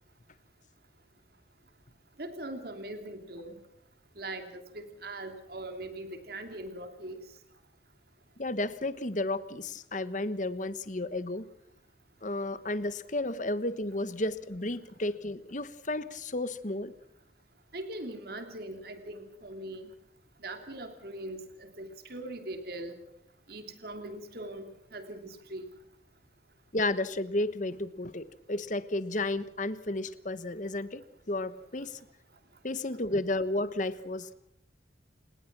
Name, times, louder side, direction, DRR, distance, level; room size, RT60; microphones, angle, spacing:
voice 1, 2.2-3.5 4.2-7.2 17.7-19.9 20.4-23.0 23.5-24.7 24.9-25.6, right 1 dB, 55° right, 7 dB, 3.0 m, -41 dB
voice 2, 8.4-11.4 12.2-16.9 26.7-32.0 32.6-34.3, left 2 dB, 40° left, 14 dB, 1.2 m, -32 dB
29.5 x 19.5 x 6.1 m, 0.73 s
head